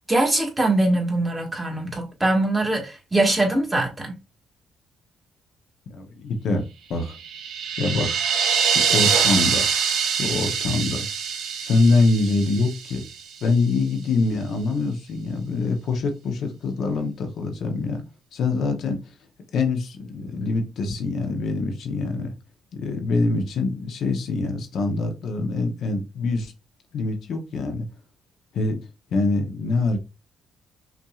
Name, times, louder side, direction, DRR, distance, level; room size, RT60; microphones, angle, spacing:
voice 1, 0.1-4.1, right 2 dB, 15° right, 1.6 m, -22 dB
voice 2, 5.9-6.6 6.9-7.2 7.8-8.2 8.7-9.7 10.2-11.1 11.6-13.0 13.4-18.0 18.3-19.1 19.5-22.3 22.7-26.5 26.9-27.9 28.5-28.8 29.1-30.0, left 3 dB, 70° left, 0.9 m, -24 dB
sound 1, 7.1-13.3, right 7 dB, 80° right, 0.9 m, -24 dB
5.8 x 2.7 x 2.4 m
cardioid pair, 90°, 0 cm